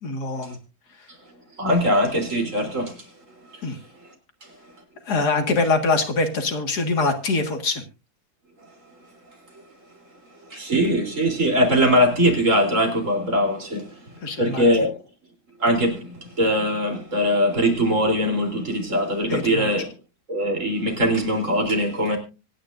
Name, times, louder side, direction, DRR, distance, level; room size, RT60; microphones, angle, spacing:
voice 1, 0.0-0.6 3.6-3.8 5.1-7.8 14.2-14.7 19.3-19.7, left 3 dB, 80° left, 2.4 m, -23 dB
voice 2, 1.6-3.0 10.5-13.9 14.4-14.9 15.6-19.9 20.3-22.2, equal, 50° right, 3.9 m, -21 dB
25.0 x 10.0 x 2.6 m
omnidirectional pair, 1.7 m